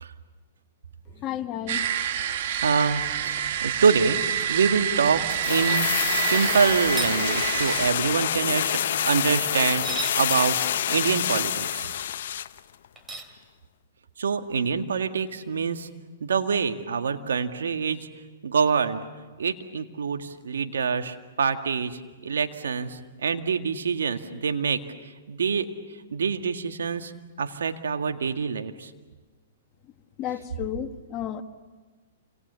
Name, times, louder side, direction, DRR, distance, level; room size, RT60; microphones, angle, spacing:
voice 1, 1.2-1.9 30.2-31.4, left 10 dB, 35° left, 7 dB, 1.6 m, -32 dB
sound 1, 1.7-7.9, right 9 dB, 55° right, 1.8 m, -28 dB
voice 2, 2.3-4.2 4.5-10.6 10.9-11.9 14.2-15.9 16.2-18.0 18.4-19.0 19.4-24.8 25.3-25.7 26.1-27.1 27.4-28.9, right 5 dB, 80° right, 6 dB, 1.9 m, -26 dB
sound 2, 5.3-12.6 12.8-12.9, left 10 dB, 65° left, 0.8 m, -27 dB
sound 3, 7.0-7.2 9.7-10.2 13.0-13.3, right 3 dB, 15° right, 3.1 m, -33 dB
29.0 x 26.5 x 7.0 m, 1.3 s
hypercardioid pair, 120°, 0 cm